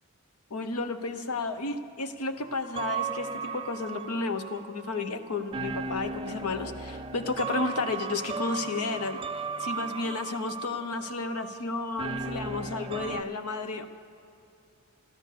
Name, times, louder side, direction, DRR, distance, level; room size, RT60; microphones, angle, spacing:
voice 1, 0.5-9.2 9.6-13.9, left 3 dB, 75° left, 9 dB, 0.9 m, -32 dB
sound 1, 2.4-13.2, right 5 dB, 25° right, 0.4 m, -36 dB
13.5 x 13.5 x 6.8 m, 2.7 s
head